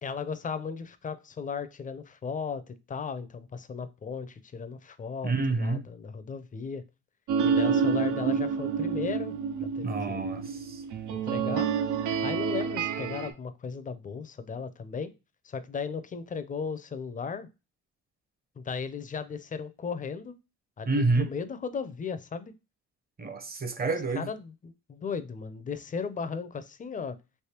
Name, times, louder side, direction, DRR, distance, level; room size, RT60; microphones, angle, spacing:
voice 1, 0.0-6.8 7.4-9.3 9.6-10.3 11.2-11.7 12.2-15.1 15.4-17.5 18.6-20.3 20.8-22.5 24.2-27.2, left 5 dB, 25° left, 0.5 m, -36 dB
voice 2, 5.2-5.8 9.8-10.8 20.9-21.3 23.2-24.3, right 3 dB, 30° right, 0.8 m, -28 dB
sound 1, 7.3-13.3, right 6 dB, 80° right, 0.6 m, -28 dB
3.4 x 3.0 x 2.9 m
cardioid pair, 90°, 30 cm